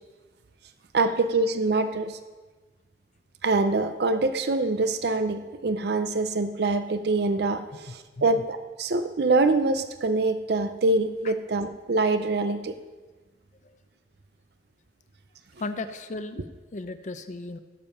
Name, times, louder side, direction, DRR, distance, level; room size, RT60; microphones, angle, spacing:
voice 1, 0.9-2.1 3.4-7.6 8.2-12.7, right 3 dB, 65° right, 9 dB, 0.6 m, -24 dB
voice 2, 7.7-8.4 11.2-11.3 15.6-16.4 16.7-17.6, left 2 dB, 45° left, 10 dB, 0.6 m, -36 dB
17.0 x 7.2 x 5.5 m, 1.3 s
head